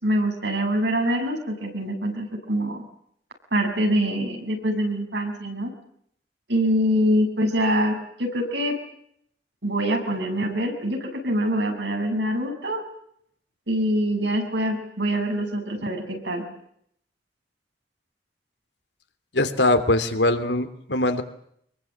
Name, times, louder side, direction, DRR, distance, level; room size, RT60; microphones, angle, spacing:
voice 1, 0.0-2.8 3.5-5.7 6.5-8.7 9.6-12.8 13.7-16.4, equal, 80° right, 4 dB, 7.0 m, -24 dB
voice 2, 19.3-21.2, left 2 dB, 80° left, 9 dB, 2.9 m, -22 dB
26.0 x 22.5 x 8.7 m, 0.70 s
head